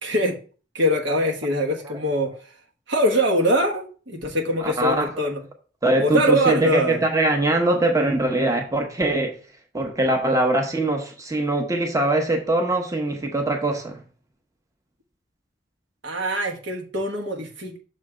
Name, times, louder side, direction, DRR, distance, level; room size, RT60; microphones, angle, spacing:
voice 1, 0.0-0.4 0.7-2.3 2.9-5.4 6.0-7.0 16.0-17.8, equal, 80° right, 1 dB, 1.2 m, -23 dB
voice 2, 4.6-5.3 5.8-9.4 9.7-14.0, right 2 dB, 20° right, 2 dB, 0.8 m, -22 dB
6.3 x 3.3 x 4.8 m, 0.38 s
head